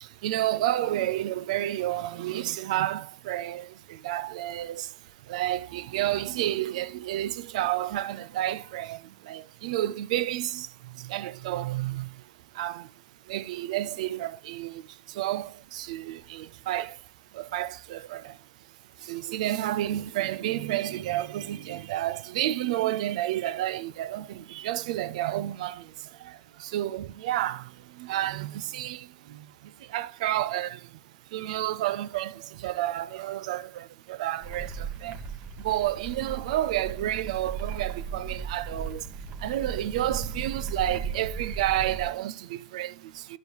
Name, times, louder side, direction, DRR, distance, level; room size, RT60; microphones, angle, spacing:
voice 1, 0.0-12.9 13.3-17.0 17.3-18.4 19.0-31.0 31.3-35.2 35.6-43.4, right 14 dB, 65° right, 0.5 m, -31 dB
sound 1, 34.4-42.1, right 5 dB, 45° right, 1.1 m, -36 dB
13.0 x 5.3 x 3.0 m
hypercardioid pair, 90°, 4 cm